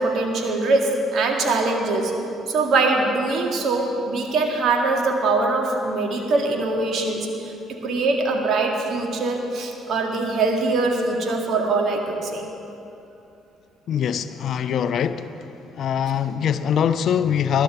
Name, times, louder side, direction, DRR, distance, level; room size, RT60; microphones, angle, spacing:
voice 1, 0.0-2.1 2.5-12.4, right 3 dB, 50° right, 2 dB, 1.8 m, -22 dB
voice 2, 13.9-15.3 15.7-17.6, left 8 dB, 55° left, 12 dB, 0.5 m, -23 dB
20.5 x 11.5 x 3.6 m, 2.8 s
figure-of-eight pair, 45°, 0 cm